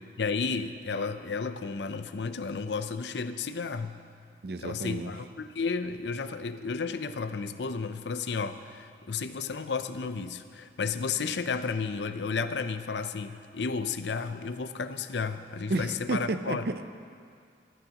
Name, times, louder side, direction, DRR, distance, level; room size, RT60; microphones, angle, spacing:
voice 1, 0.2-4.0 4.6-16.6, left 5 dB, 80° left, 10 dB, 0.6 m, -32 dB
voice 2, 4.4-5.1 15.7-16.9, right 2 dB, 60° right, 9 dB, 0.6 m, -31 dB
23.0 x 12.5 x 3.0 m, 2.3 s
head